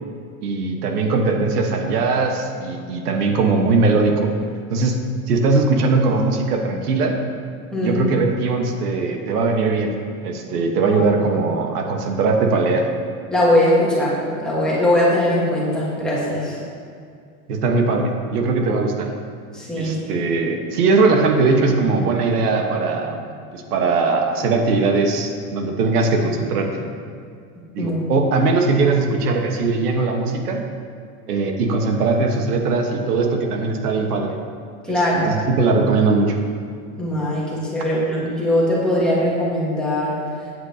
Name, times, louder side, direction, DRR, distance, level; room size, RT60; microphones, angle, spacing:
voice 1, 0.4-4.3 4.7-5.0 5.3-7.2 7.8-9.9 10.2-12.9 17.5-19.1 19.8-23.2 23.5-26.9 27.7-30.6 31.3-34.4 34.9-36.4, right 3 dB, 90° right, 3 dB, 1.4 m, -20 dB
voice 2, 7.7-8.0 13.3-16.6 19.5-20.3 27.8-28.0 34.8-35.3 37.0-40.2, left 1 dB, ahead, -8 dB, 1.4 m, -20 dB
13.0 x 9.6 x 2.8 m, 2.3 s
supercardioid pair, 175°, 45 cm